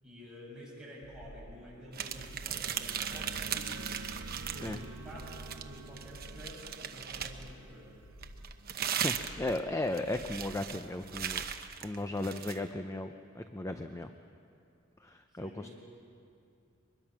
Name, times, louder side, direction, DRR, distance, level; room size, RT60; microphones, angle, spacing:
voice 1, 0.0-3.9 4.3-8.0 15.3-15.7, equal, 5° right, -7 dB, 7.7 m, -50 dB
sound 1, 1.0-1.7 2.0-2.7 3.0-3.6 4.0-4.7 5.0-5.6 6.0-6.7 7.0-7.6 8.0-8.7 9.0-9.7 10.0-10.7 11.0-11.7, equal, 80° left, 1.9 m, -51 dB
sound 2, 1.9-4.8 5.2-7.5 8.2-12.6, right 9 dB, 45° right, 0.9 m, -38 dB
sound 3, 1.9-8.6, right 2 dB, 70° right, 0.9 m, -48 dB
voice 2, 8.9-11.4 11.8-14.1 15.0-15.7, left 2 dB, 15° left, 7 dB, 0.6 m, -36 dB
23.0 x 21.0 x 6.1 m, 2.5 s
head